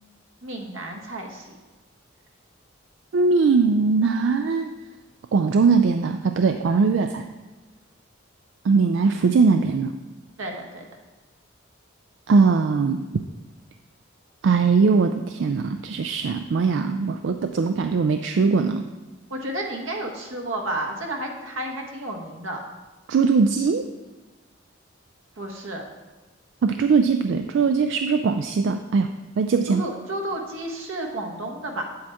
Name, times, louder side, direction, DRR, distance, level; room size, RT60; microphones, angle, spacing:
voice 1, 0.4-1.5 10.4-10.9 19.3-22.6 25.4-25.8 29.7-31.8, right 1 dB, 85° right, 1 dB, 1.3 m, -31 dB
voice 2, 3.1-4.7 5.3-7.3 8.6-9.9 12.3-13.0 14.4-18.8 23.1-23.8 26.6-29.8, right 4 dB, 70° right, 7 dB, 0.3 m, -20 dB
8.3 x 7.7 x 3.5 m, 1.2 s
head